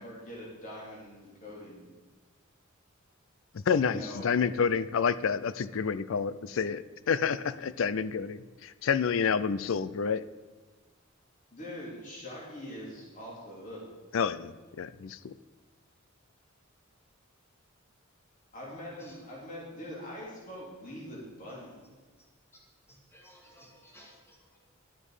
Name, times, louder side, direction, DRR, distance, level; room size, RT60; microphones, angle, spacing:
voice 1, 0.0-1.9 3.8-4.3 11.5-13.9 18.5-21.8, equal, 40° left, -4 dB, 2.9 m, -43 dB
voice 2, 3.7-10.2 14.1-15.3, left 6 dB, 70° left, 15 dB, 0.4 m, -29 dB
voice 3, 22.9-24.6, equal, 10° left, -2 dB, 2.1 m, -57 dB
12.0 x 7.5 x 4.9 m, 1.4 s
head